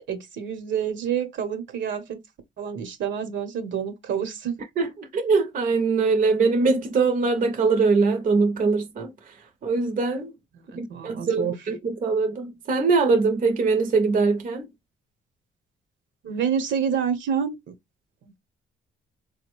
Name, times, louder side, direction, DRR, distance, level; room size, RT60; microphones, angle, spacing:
voice 1, 0.0-2.2 2.6-4.6 10.5-11.6 16.2-17.7, right 8 dB, 70° right, 0.9 m, -28 dB
voice 2, 4.8-9.1 9.6-10.3 10.7-14.7, right 4 dB, 45° right, 0.7 m, -22 dB
3.7 x 2.2 x 3.0 m
cardioid pair, 90°, 20 cm